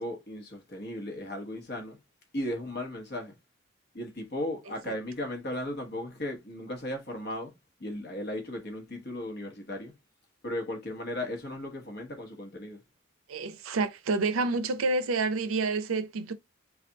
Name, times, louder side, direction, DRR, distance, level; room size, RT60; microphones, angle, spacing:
voice 1, 0.0-2.0 2.3-3.3 3.9-7.5 7.8-9.9 10.4-12.8, left 1 dB, 50° left, 1.1 m, -36 dB
voice 2, 13.3-16.3, right 3 dB, 80° right, 0.5 m, -28 dB
3.3 x 2.4 x 3.8 m
head